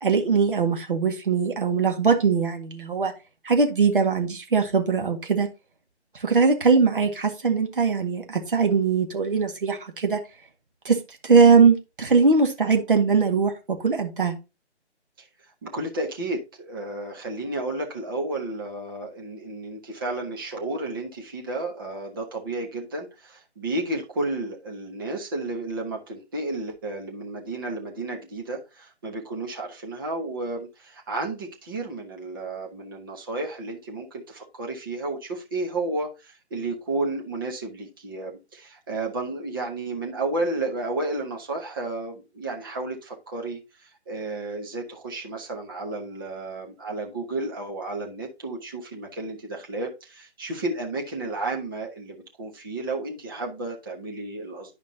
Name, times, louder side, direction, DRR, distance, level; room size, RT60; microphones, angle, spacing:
voice 1, 0.0-3.1 3.4-5.5 6.1-10.2 10.9-14.4, right 5 dB, 50° right, 4 dB, 1.8 m, -21 dB
voice 2, 15.6-54.7, right 2 dB, 20° right, 0 dB, 1.2 m, -32 dB
11.0 x 5.1 x 2.8 m, 0.27 s
figure-of-eight pair, 150°, 35 cm